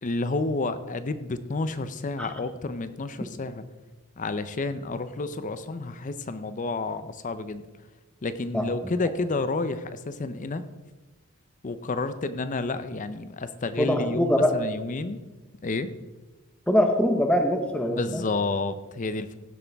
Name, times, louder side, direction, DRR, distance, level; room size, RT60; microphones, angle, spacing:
voice 1, 0.0-3.6 4.2-7.6 8.2-10.6 11.6-15.2 15.6-15.9 17.9-19.4, left 3 dB, 35° left, 12 dB, 0.5 m, -30 dB
voice 2, 13.8-14.5 16.7-18.3, left 1 dB, 5° left, 4 dB, 0.8 m, -23 dB
15.5 x 8.0 x 3.4 m, 1.2 s
head